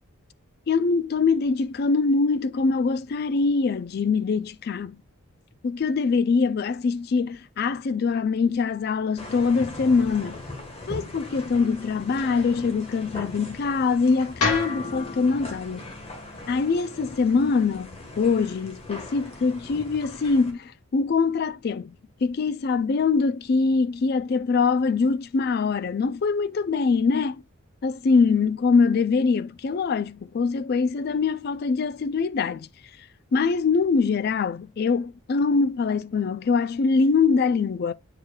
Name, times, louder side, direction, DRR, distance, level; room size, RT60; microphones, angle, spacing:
voice 1, 0.7-5.0 5.6-10.4 10.9-15.9 16.5-21.9 22.2-27.4 27.8-32.7 33.3-37.9, left 4 dB, 45° left, 0.3 m, -23 dB
sound 1, 9.2-20.5, left 2 dB, 25° left, 1.3 m, -40 dB
sound 2, 14.4-18.6, left 3 dB, 90° left, 1.6 m, -33 dB
8.7 x 4.8 x 2.2 m
head